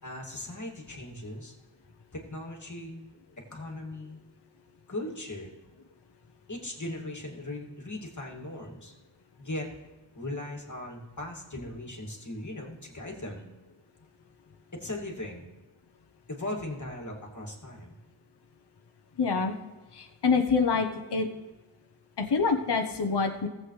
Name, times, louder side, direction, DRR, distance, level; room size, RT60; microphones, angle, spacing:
voice 1, 0.0-1.5 2.1-3.0 3.5-4.2 4.9-5.5 6.5-8.9 9.4-9.7 10.1-13.5 14.7-15.5 16.3-18.0, left 1 dB, 35° left, 0 dB, 2.4 m, -38 dB
voice 2, 19.2-19.5 20.0-21.3 22.2-23.5, left 5 dB, 55° left, 4 dB, 1.0 m, -26 dB
15.0 x 7.9 x 3.2 m, 1.2 s
cardioid pair, 45°, 49 cm